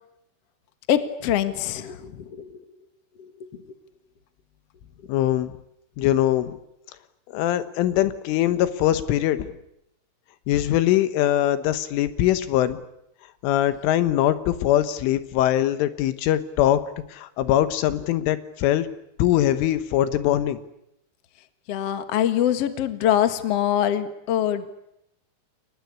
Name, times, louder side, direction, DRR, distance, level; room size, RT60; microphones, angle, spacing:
voice 1, 0.9-2.5 21.7-24.6, left 10 dB, 55° left, 9 dB, 1.7 m, -23 dB
voice 2, 5.1-5.5 6.0-6.6 7.3-9.6 10.5-12.8 13.4-16.8 17.1-18.9 19.2-20.6, left 12 dB, 90° left, 12 dB, 3.9 m, -22 dB
29.5 x 22.5 x 8.6 m, 0.80 s
omnidirectional pair, 5.5 m